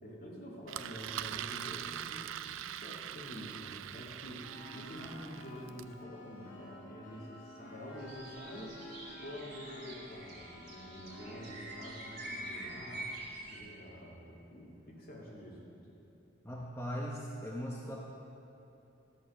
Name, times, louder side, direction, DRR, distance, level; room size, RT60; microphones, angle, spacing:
voice 1, 0.0-2.3 2.6-4.5 4.7-8.8 9.2-13.1 13.5-16.0, equal, 55° left, -4 dB, 2.2 m, -47 dB
Engine, 0.7-5.9, right 10 dB, 90° right, 0.3 m, -42 dB
sound 1, 4.4-13.2, left 1 dB, 80° left, 2.3 m, -51 dB
sound 2, 8.0-13.6, right 1 dB, 55° right, 2.5 m, -46 dB
voice 2, 16.4-18.0, equal, 15° left, -3 dB, 0.8 m, -39 dB
13.0 x 6.8 x 6.4 m, 3.0 s
head